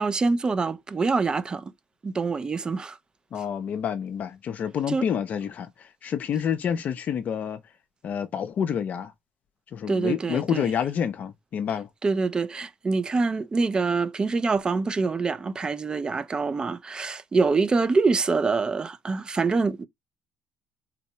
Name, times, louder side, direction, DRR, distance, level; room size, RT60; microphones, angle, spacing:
voice 1, 0.0-1.7 2.0-3.0 4.9-5.1 9.9-10.7 12.0-19.8, right 4 dB, 25° right, 0.4 m, -25 dB
voice 2, 3.3-7.6 8.0-9.1 9.7-11.9, left 8 dB, 50° left, 0.5 m, -28 dB
3.9 x 2.1 x 2.8 m
cardioid pair, 100°, 3 cm